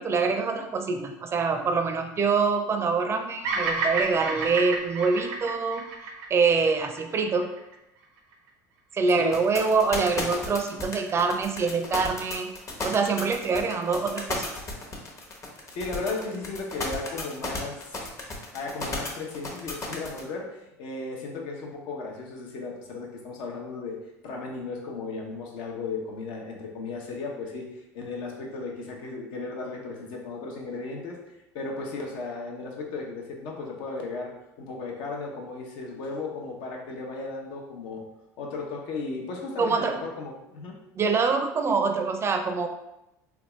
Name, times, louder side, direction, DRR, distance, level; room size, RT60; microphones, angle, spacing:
voice 1, 0.0-5.8 6.3-7.5 8.9-12.5 12.8-14.5 39.6-40.0 41.0-42.7, right 4 dB, 30° right, 5 dB, 0.5 m, -25 dB
Bird vocalization bird call bird song, 3.4-7.7, right 3 dB, 80° right, 0.6 m, -31 dB
voice 2, 9.1-9.5 15.7-18.1 18.5-24.0 24.2-34.3 34.6-38.0 38.4-40.8, left 3 dB, 65° left, 0 dB, 0.8 m, -35 dB
sound 1, 9.3-20.2, left 3 dB, 35° left, 0.9 m, -33 dB
3.4 x 2.4 x 3.0 m, 0.90 s
supercardioid pair, 90°, 9 cm